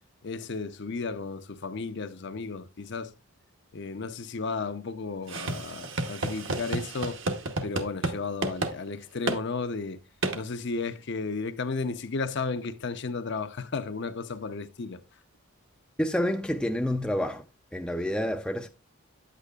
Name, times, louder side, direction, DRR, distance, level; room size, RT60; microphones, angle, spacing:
voice 1, 0.2-3.1 3.7-7.2 7.6-10.0 10.3-15.0, left 4 dB, 55° left, 0.6 m, -33 dB
sound 1, 5.3-8.2 8.4-8.7 9.3-9.4 10.2-10.4, right 2 dB, 60° right, 1.0 m, -31 dB
voice 2, 16.0-17.4 17.7-18.7, left 1 dB, 5° left, 0.4 m, -28 dB
9.1 x 8.2 x 2.4 m
head